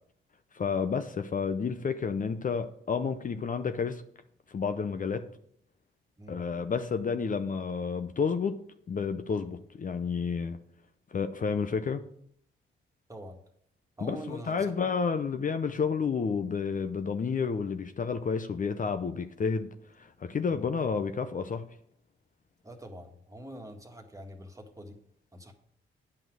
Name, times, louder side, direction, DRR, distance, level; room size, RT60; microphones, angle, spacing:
voice 1, 0.5-4.0 4.5-5.2 6.3-8.6 8.9-10.6 11.1-12.0 14.0-19.7 19.9-21.6, left 5 dB, 40° left, 8 dB, 0.7 m, -30 dB
voice 2, 14.0-14.9 20.5-20.7 22.6-25.0 25.3-25.5, equal, 15° right, 4 dB, 1.8 m, -44 dB
9.1 x 5.8 x 6.2 m, 0.67 s
cardioid pair, 70°, 21 cm